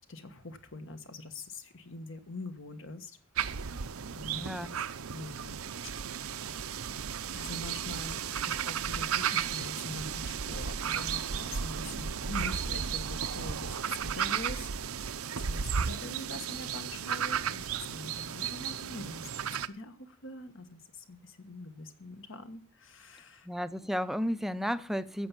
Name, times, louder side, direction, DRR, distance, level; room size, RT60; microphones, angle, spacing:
voice 1, 0.1-3.2 4.1-4.8 5.1-5.6 5.8-5.9 7.3-15.1 15.4-23.5, left 2 dB, 65° left, 1.5 m, -44 dB
sound 1, 3.4-19.7, right 7 dB, 80° right, 0.7 m, -34 dB
voice 2, 4.3-4.7 23.4-25.3, equal, ahead, 0.6 m, -33 dB
15.0 x 7.0 x 7.4 m
head